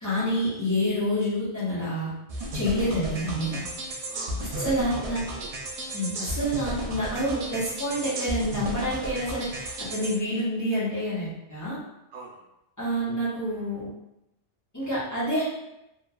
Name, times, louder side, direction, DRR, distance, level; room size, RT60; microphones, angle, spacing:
voice 1, 0.0-2.1 2.5-3.6 4.4-5.2 5.9-11.8 12.8-13.9 14.7-15.4, equal, 15° left, -11 dB, 0.9 m, -28 dB
sound 1, 2.3-10.1, right 1 dB, 70° right, 0.3 m, -34 dB
voice 2, 4.0-5.9 6.2-6.4 12.1-12.4, right 5 dB, 90° right, -3 dB, 1.0 m, -43 dB
3.0 x 2.2 x 2.3 m, 0.87 s
omnidirectional pair, 1.2 m